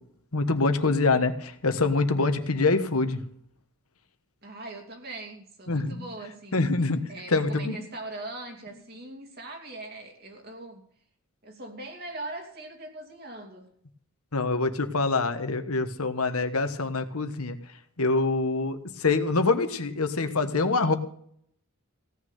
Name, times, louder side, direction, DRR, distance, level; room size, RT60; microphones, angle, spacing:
voice 1, 0.3-3.2 5.7-6.0 6.5-7.0 7.3-7.8 14.3-17.6 18.0-21.0, left 3 dB, 85° left, 8 dB, 1.4 m, -25 dB
voice 2, 4.4-6.7 7.1-10.8 11.4-13.7, right 2 dB, 45° right, 3 dB, 2.8 m, -41 dB
16.5 x 6.4 x 9.3 m, 0.65 s
head